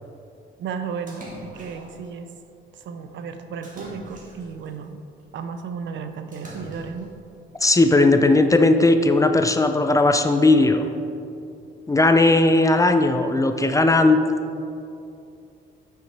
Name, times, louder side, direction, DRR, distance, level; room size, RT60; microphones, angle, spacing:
voice 1, 0.6-2.3 2.7-5.0 5.3-7.1, right 6 dB, 65° right, 8 dB, 0.6 m, -34 dB
Splash splatter, 1.1-2.1 3.6-4.7 6.3-7.1, right 1 dB, 40° right, 1.8 m, -41 dB
voice 2, 7.6-10.9 11.9-14.2, left 2 dB, 15° left, 7 dB, 0.4 m, -17 dB
6.7 x 5.9 x 4.6 m, 2.6 s
cardioid pair, 90°, 20 cm